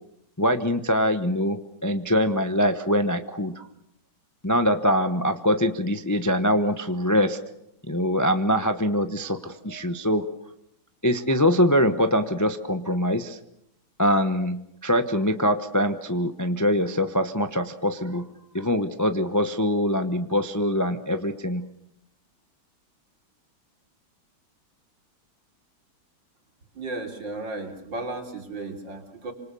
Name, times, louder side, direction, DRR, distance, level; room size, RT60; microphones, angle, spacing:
voice 1, 0.4-3.7 4.4-7.4 7.8-10.3 11.0-13.4 14.0-18.3 18.5-21.7, equal, 15° left, 8 dB, 0.7 m, -23 dB
voice 2, 26.7-29.3, right 2 dB, 65° right, 3 dB, 4.0 m, -34 dB
28.0 x 26.0 x 7.0 m, 0.79 s
omnidirectional pair, 2.2 m